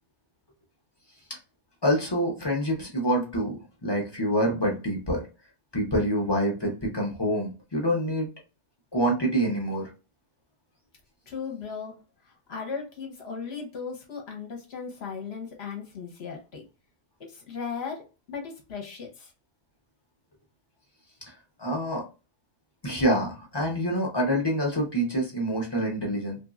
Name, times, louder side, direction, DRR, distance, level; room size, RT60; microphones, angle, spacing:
voice 1, 1.8-5.2 5.7-8.3 8.9-9.9 21.6-22.0 22.8-26.4, equal, 30° left, -1 dB, 0.5 m, -26 dB
voice 2, 11.3-12.0 12.2-16.6 17.3-19.3, left 5 dB, 55° left, 1 dB, 0.9 m, -37 dB
2.9 x 2.6 x 2.3 m, 0.31 s
omnidirectional pair, 1.4 m